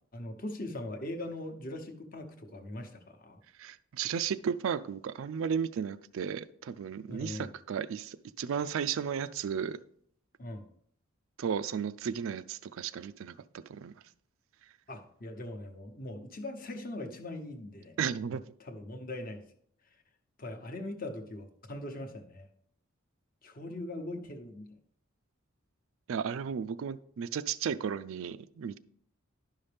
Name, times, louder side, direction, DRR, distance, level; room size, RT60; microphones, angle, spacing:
voice 1, 0.1-3.4 7.1-7.5 10.4-10.7 14.9-18.0 18.6-19.4 20.4-22.5 23.4-24.7, left 1 dB, 40° left, 5 dB, 0.9 m, -41 dB
voice 2, 3.6-9.8 11.4-13.4 13.7-13.9 18.0-18.4 26.1-28.8, right 7 dB, 65° right, 14 dB, 0.3 m, -34 dB
10.5 x 5.6 x 3.4 m, 0.64 s
head